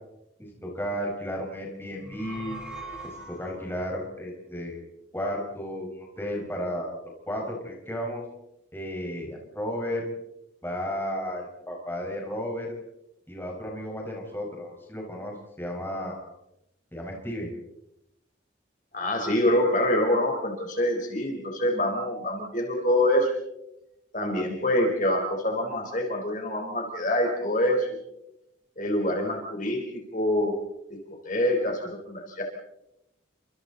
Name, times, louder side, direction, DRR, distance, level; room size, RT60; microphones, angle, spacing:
voice 1, 0.4-2.6 3.3-4.8 5.1-7.0 7.3-8.2 8.7-10.1 10.6-12.7 13.3-16.3 16.9-17.5, equal, 10° left, -1 dB, 5.2 m, -33 dB
sound 1, 1.9-3.8, right 2 dB, 5° right, 4.2 m, -41 dB
voice 2, 18.9-23.3 24.1-27.9 28.8-30.5 31.2-32.4, left 1 dB, 40° left, 1 dB, 4.3 m, -25 dB
30.0 x 26.0 x 4.1 m, 0.86 s
head